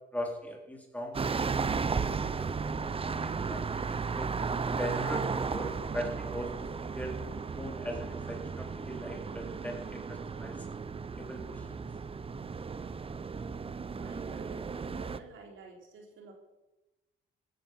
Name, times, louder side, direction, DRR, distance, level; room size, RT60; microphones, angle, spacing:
voice 1, 0.1-2.8 3.1-4.3 4.8-7.2 7.6-10.7 11.2-11.8, equal, 5° left, 1 dB, 4.0 m, -40 dB
sound 1, 1.1-15.2, right 5 dB, 30° right, 0.8 m, -35 dB
voice 2, 14.0-16.3, right 4 dB, 75° right, 1 dB, 4.0 m, -51 dB
16.0 x 10.5 x 7.3 m, 1.0 s
cardioid pair, 90°, 20 cm